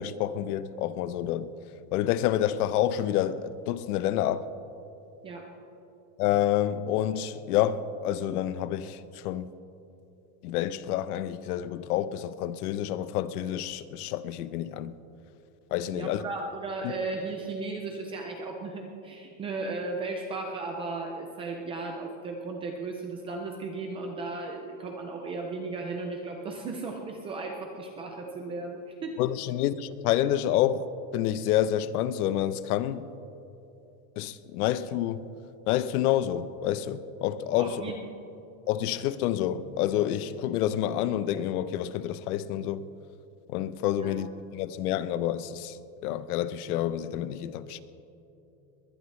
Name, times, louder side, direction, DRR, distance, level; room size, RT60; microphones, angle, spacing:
voice 1, 0.0-1.5 1.9-4.5 6.2-9.5 10.4-14.9 15.7-16.2 16.8-16.9 29.2-33.1 34.2-35.2 35.7-37.9 38.7-42.9 43.5-45.8 46.0-47.8, left 11 dB, 70° left, 0.9 m, -28 dB
voice 2, 5.2-5.5 15.9-29.2 37.6-38.0 44.0-44.2, right 3 dB, 15° right, 0.3 m, -35 dB
21.0 x 20.0 x 3.2 m
supercardioid pair, 165°, 48 cm